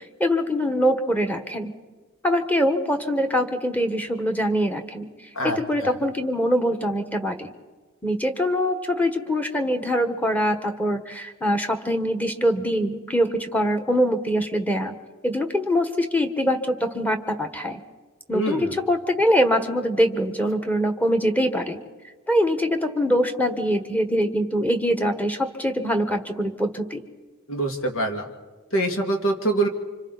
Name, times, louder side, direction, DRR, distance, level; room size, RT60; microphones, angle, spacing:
voice 1, 0.0-1.7 2.2-5.1 5.4-7.5 8.0-14.9 15.2-17.8 18.3-21.8 22.3-27.0, equal, 10° left, 5 dB, 1.4 m, -23 dB
voice 2, 5.4-5.9 18.3-18.8 27.5-28.3 28.7-29.7, right 2 dB, 70° left, 3 dB, 2.5 m, -25 dB
29.0 x 26.0 x 4.1 m, 1.4 s
head